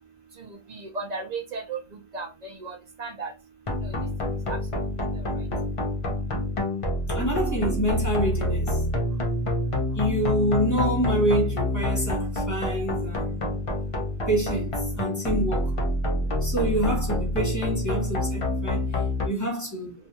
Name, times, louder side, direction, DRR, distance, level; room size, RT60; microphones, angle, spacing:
voice 1, 0.7-1.8 2.1-3.3 4.5-4.6, right 4 dB, 50° right, 0.6 m, -34 dB
sound 1, 3.7-19.3, left 1 dB, 40° left, 0.5 m, -27 dB
voice 2, 7.1-8.8 9.9-13.5 14.3-15.7 16.4-18.9 19.2-19.9, right 1 dB, 15° left, 0.9 m, -27 dB
2.5 x 2.2 x 2.9 m
omnidirectional pair, 1.1 m